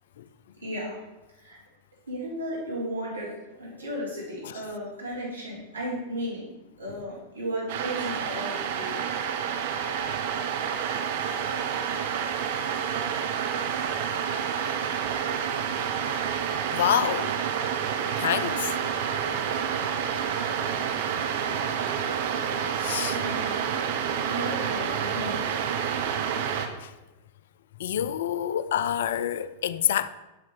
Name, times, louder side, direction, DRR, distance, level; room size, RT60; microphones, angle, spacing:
voice 1, 0.6-1.0 1.4-1.6 2.1-6.5 6.8-9.0 23.1-23.5 24.3-25.4, equal, 85° right, 2.9 m, -34 dB
sound 1, 7.7-26.7, right 7 dB, 55° right, 0.7 m, -29 dB
voice 2, 16.7-17.3 18.2-18.7 22.8-23.2 26.8-26.9 27.8-30.1, left 10 dB, 60° left, 0.3 m, -27 dB
7.3 x 6.2 x 4.1 m
figure-of-eight pair, 90°, 0 cm